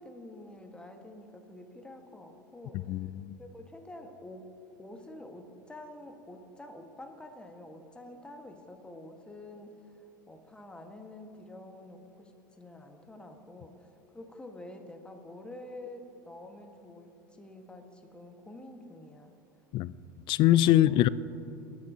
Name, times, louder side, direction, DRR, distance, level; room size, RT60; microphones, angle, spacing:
voice 1, 0.0-3.1 3.4-4.5 4.8-10.0 10.3-12.3 12.6-19.3 20.6-21.0, left 1 dB, 10° left, 1.4 m, -48 dB
voice 2, 2.9-3.3 19.7-19.9 20.3-21.1, left 14 dB, 50° left, 0.4 m, -23 dB
20.0 x 9.4 x 2.8 m
hypercardioid pair, 85°, 11 cm